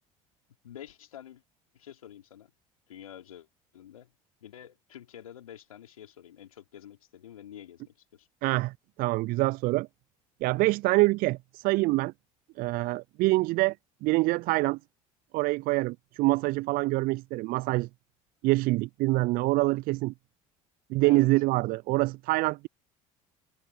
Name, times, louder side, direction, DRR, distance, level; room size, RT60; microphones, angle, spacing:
voice 1, 0.6-1.4 1.7-2.5 2.9-3.5 3.7-4.1 4.4-8.3 21.0-21.3, left 10 dB, 85° left, 3.6 m, -48 dB
voice 2, 8.4-9.9 10.4-12.1 12.6-13.8 14.0-14.8 15.3-17.9 18.4-20.1 20.9-22.7, right 21 dB, 55° right, 0.5 m, -25 dB
hypercardioid pair, 65°, 18 cm